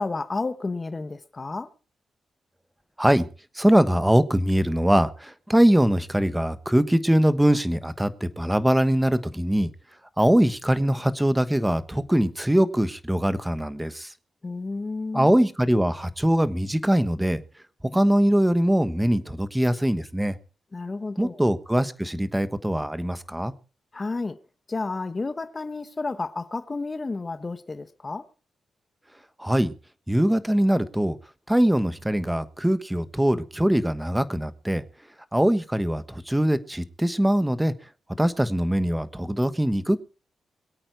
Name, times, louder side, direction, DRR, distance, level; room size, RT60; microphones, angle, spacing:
voice 1, 0.0-1.7 14.4-15.3 20.7-21.4 23.9-24.4 24.7-28.3, left 3 dB, 30° left, 1.1 m, -31 dB
voice 2, 3.5-9.7 10.2-14.1 15.1-17.4 17.9-20.4 21.2-23.5 29.4-29.7 30.1-31.2 31.5-34.8 35.3-37.7 38.2-40.0, right 1 dB, 5° right, 1.2 m, -22 dB
22.0 x 8.8 x 4.6 m
cardioid pair, 100°, 0 cm